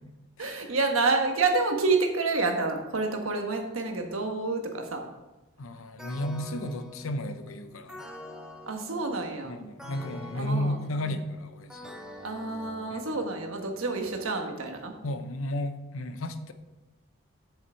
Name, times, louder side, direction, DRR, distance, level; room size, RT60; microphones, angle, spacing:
voice 1, 0.4-5.0 8.7-9.6 10.3-11.2 12.2-14.9, right 3 dB, 85° right, 4 dB, 1.3 m, -28 dB
voice 2, 5.6-8.0 9.4-11.9 12.9-13.0 15.0-16.5, left 1 dB, 85° left, 10 dB, 0.7 m, -33 dB
sound 1, 6.0-13.6, left 1 dB, 5° right, 0.7 m, -46 dB
7.4 x 7.1 x 4.5 m, 1.1 s
head